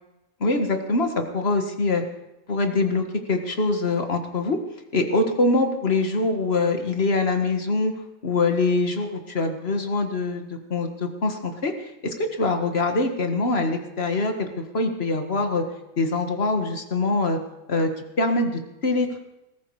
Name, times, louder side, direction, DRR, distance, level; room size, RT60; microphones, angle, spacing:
voice 1, 0.4-2.0 2.5-4.6 4.9-7.9 8.2-15.6 16.0-17.4 17.7-17.9 18.2-19.2, left 3 dB, 45° left, 6 dB, 1.9 m, -24 dB
19.5 x 14.0 x 4.9 m, 0.96 s
omnidirectional pair, 1.5 m